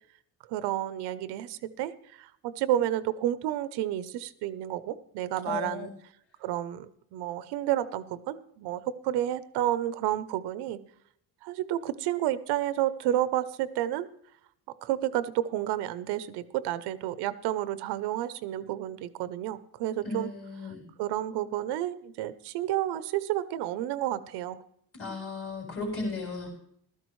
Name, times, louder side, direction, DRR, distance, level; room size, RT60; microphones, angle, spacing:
voice 1, 0.5-5.9 6.4-10.8 11.4-14.1 14.8-20.3 21.0-24.6, right 13 dB, 85° right, 14 dB, 0.8 m, -30 dB
voice 2, 5.5-5.9 20.0-20.8 24.9-26.5, left 3 dB, 35° left, -2 dB, 3.8 m, -35 dB
15.0 x 13.0 x 3.1 m, 0.70 s
cardioid pair, 175°, 39 cm